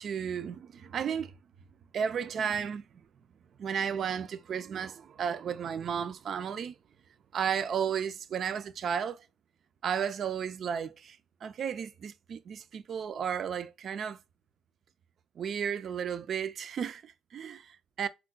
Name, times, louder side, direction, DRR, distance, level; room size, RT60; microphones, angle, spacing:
voice 1, 0.0-1.3 1.9-2.8 3.6-6.7 7.3-9.2 9.8-14.2 15.4-18.1, right 7 dB, 55° right, 0.3 m, -33 dB
4.4 x 2.1 x 2.3 m
cardioid pair, 130°, 0 cm